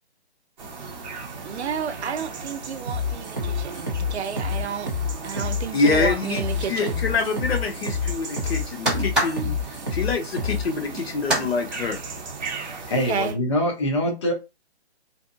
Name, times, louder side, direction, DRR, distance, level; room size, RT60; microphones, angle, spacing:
sound 1, 0.6-13.3, right 4 dB, 40° right, 0.8 m, -37 dB
voice 1, 1.4-4.9 5.2-7.1 13.1-13.4, right 7 dB, 75° right, 0.5 m, -31 dB
sound 2, 2.9-10.6, left 4 dB, 20° right, 0.3 m, -28 dB
voice 2, 5.7-6.4 6.7-9.5 9.9-12.0, left 4 dB, 65° left, 0.8 m, -25 dB
sound 3, 7.0-11.5, right 1 dB, ahead, 1.2 m, -30 dB
voice 3, 12.9-14.3, left 1 dB, 25° left, 0.5 m, -24 dB
2.6 x 2.3 x 2.5 m
hypercardioid pair, 155°, 33 cm